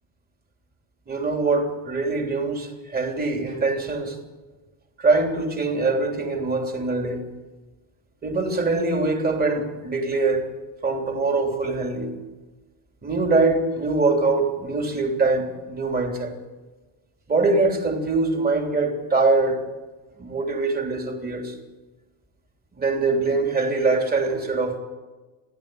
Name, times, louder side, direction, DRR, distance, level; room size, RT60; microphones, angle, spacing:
voice 1, 1.1-4.2 5.0-7.2 8.2-10.5 10.8-12.1 13.0-16.3 17.3-19.6 20.2-21.6 22.8-24.8, right 3 dB, 20° right, 3.3 m, -23 dB
30.0 x 12.0 x 9.2 m
cardioid pair, 165°, 46 cm